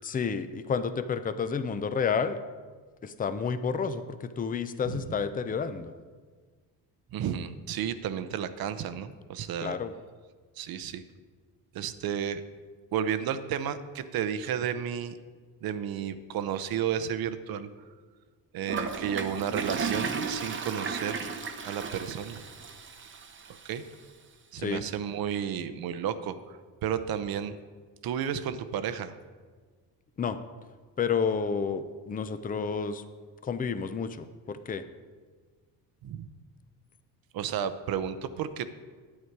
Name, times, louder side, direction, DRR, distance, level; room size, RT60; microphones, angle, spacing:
voice 1, 0.0-2.4 3.0-5.9 9.6-9.9 24.6-24.9 30.2-30.4 31.0-33.0 33.4-34.8, left 6 dB, 20° left, 11 dB, 0.5 m, -30 dB
voice 2, 4.8-5.2 7.1-9.8 10.6-11.0 11.7-12.4 12.9-15.2 15.6-17.7 18.5-21.3 21.6-22.4 23.6-23.8 24.5-26.6 26.8-27.6 28.0-29.1 36.0-36.3 37.3-38.7, right 8 dB, 60° right, 11 dB, 0.7 m, -32 dB
Toilet flush, 18.7-23.7, right 5 dB, 30° right, 0.8 m, -34 dB
9.6 x 8.6 x 4.7 m, 1.5 s
cardioid pair, 95°, 41 cm